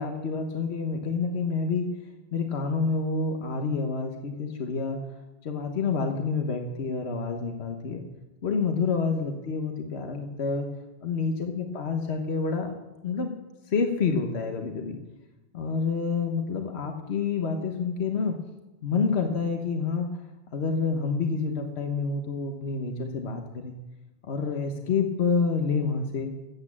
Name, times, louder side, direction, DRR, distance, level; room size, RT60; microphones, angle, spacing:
voice 1, 0.0-1.9 2.3-5.0 5.4-8.0 8.4-10.7 11.0-12.8 13.0-13.4 13.7-15.0 15.5-18.4 18.8-20.1 20.5-23.7 24.3-26.3, left 5 dB, 80° left, 4 dB, 1.4 m, -28 dB
13.5 x 8.5 x 7.4 m, 1.1 s
omnidirectional pair, 1.1 m